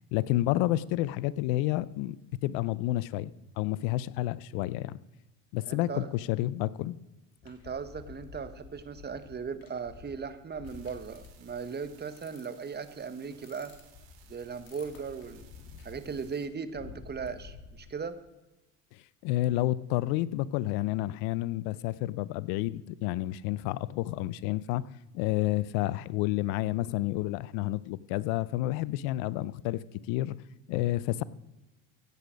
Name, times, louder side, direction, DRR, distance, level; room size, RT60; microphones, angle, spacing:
voice 1, 0.1-2.2 2.4-3.3 3.6-5.0 5.5-7.0 18.9-24.8 25.1-30.4 30.7-31.2, left 16 dB, 80° left, 20 dB, 0.6 m, -30 dB
voice 2, 5.7-6.1 7.4-13.7 14.3-15.4 15.8-18.2, right 5 dB, 25° right, 12 dB, 1.1 m, -38 dB
sound 1, 7.4-18.0, left 6 dB, 65° left, 2.7 m, -51 dB
sound 2, 10.6-16.5, right 9 dB, 75° right, 2.2 m, -61 dB
16.0 x 8.4 x 5.1 m, 1.1 s
supercardioid pair, 90°, 38 cm